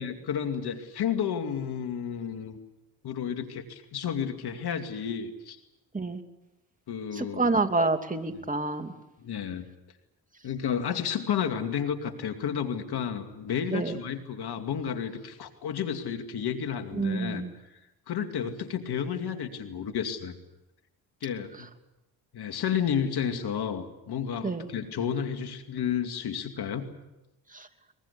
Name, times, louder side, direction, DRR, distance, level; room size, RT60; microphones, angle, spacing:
voice 1, 0.0-2.6 3.0-5.6 6.9-7.5 9.2-9.7 10.4-17.8 18.1-20.3 21.2-21.7 22.3-26.9, left 8 dB, 65° left, 6 dB, 2.5 m, -31 dB
voice 2, 7.1-8.9 13.7-14.0 17.0-17.5 24.4-24.7 27.5-27.7, right 3 dB, 20° right, 5 dB, 2.8 m, -28 dB
22.5 x 22.5 x 8.4 m, 0.95 s
supercardioid pair, 55°, 41 cm